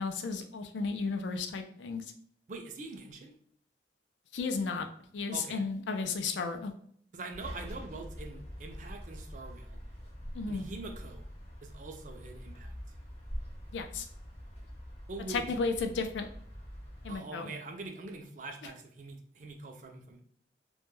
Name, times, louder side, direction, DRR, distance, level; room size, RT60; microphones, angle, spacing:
voice 1, 0.0-2.0 4.3-4.9 5.1-6.7 10.3-10.6 13.7-14.1 15.3-16.3 17.0-17.5, left 4 dB, 85° left, 6 dB, 0.4 m, -33 dB
voice 2, 2.5-3.3 5.3-5.6 7.1-9.8 10.5-11.2 11.6-12.7 15.1-15.5 17.1-20.2, right 3 dB, 45° right, 4 dB, 0.4 m, -44 dB
sound 1, 7.3-17.2, equal, 35° left, 0.7 m, -45 dB
2.2 x 2.1 x 3.0 m, 0.64 s
head